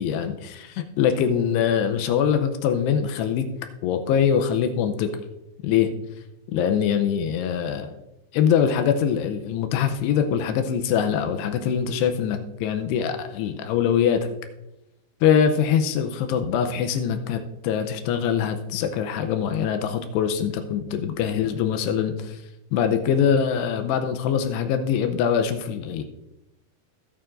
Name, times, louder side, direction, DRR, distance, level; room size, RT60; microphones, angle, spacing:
voice 1, 0.0-3.5 3.8-5.1 5.6-5.9 6.5-8.0 8.3-14.3 15.2-22.4 22.7-26.0, left 8 dB, 90° left, 7 dB, 2.4 m, -23 dB
20.5 x 7.0 x 2.5 m, 0.91 s
omnidirectional pair, 5.5 m